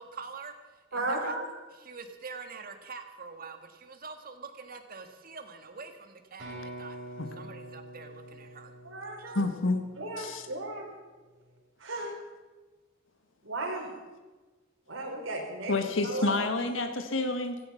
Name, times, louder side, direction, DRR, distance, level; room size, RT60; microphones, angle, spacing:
voice 1, 0.0-1.3 1.8-7.0 7.4-8.7 9.1-9.4, right 4 dB, 45° right, 6 dB, 1.7 m, -45 dB
voice 2, 0.9-1.4 8.8-9.4 10.0-10.9 11.8-12.1 13.4-13.9 14.9-16.3, right 2 dB, 90° right, -1 dB, 4.7 m, -35 dB
sound 1, 6.4-10.2, right 1 dB, 70° right, 7.0 m, -45 dB
voice 3, 9.4-9.8 10.2-10.5 15.7-17.6, left 2 dB, 75° left, 6 dB, 1.6 m, -29 dB
16.5 x 15.0 x 5.8 m, 1.3 s
head